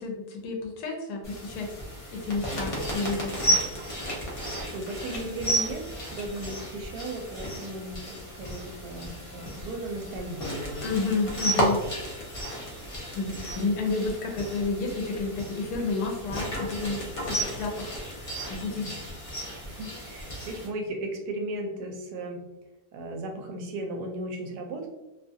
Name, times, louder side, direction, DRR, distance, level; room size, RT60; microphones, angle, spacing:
voice 1, 0.0-1.8 2.1-3.6 10.8-11.8 13.1-17.9 18.5-18.9, left 3 dB, 75° left, 1 dB, 1.1 m, -30 dB
sound 1, 1.2-20.7, equal, 60° left, 0.3 m, -33 dB
voice 2, 4.7-11.0 18.8-18.9 19.7-22.4 22.9-24.9, right 1 dB, 80° right, 3 dB, 1.1 m, -36 dB
2.9 x 2.3 x 2.5 m, 1.0 s
omnidirectional pair, 1.7 m